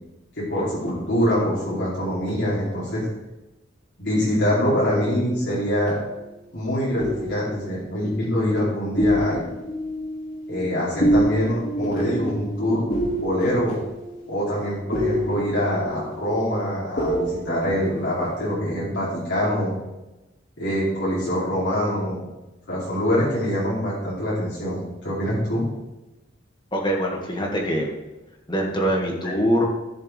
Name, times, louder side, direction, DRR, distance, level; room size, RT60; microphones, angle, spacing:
voice 1, 0.4-3.1 4.0-6.0 6.5-9.4 10.5-12.8 13.2-13.8 14.3-19.7 20.6-22.2 22.7-25.6 29.2-29.3, equal, 75° left, -8 dB, 2.8 m, -24 dB
sound 1, 5.3-6.4 7.0-8.7 9.0-18.5, equal, 50° left, 2.2 m, -28 dB
voice 2, 26.7-27.9 28.5-29.7, equal, 25° left, 0 dB, 1.8 m, -23 dB
14.5 x 6.7 x 3.3 m, 1.0 s
head